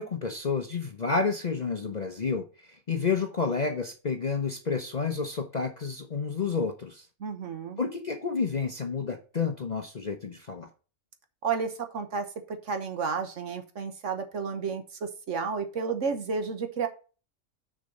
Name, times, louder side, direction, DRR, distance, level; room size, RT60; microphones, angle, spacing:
voice 1, 0.0-2.5 2.9-7.1 7.8-10.7, left 5 dB, 40° left, 4 dB, 0.7 m, -30 dB
voice 2, 7.2-7.8 11.4-16.9, right 5 dB, 60° right, 7 dB, 1.3 m, -32 dB
6.7 x 5.2 x 5.3 m, 0.35 s
omnidirectional pair, 1.5 m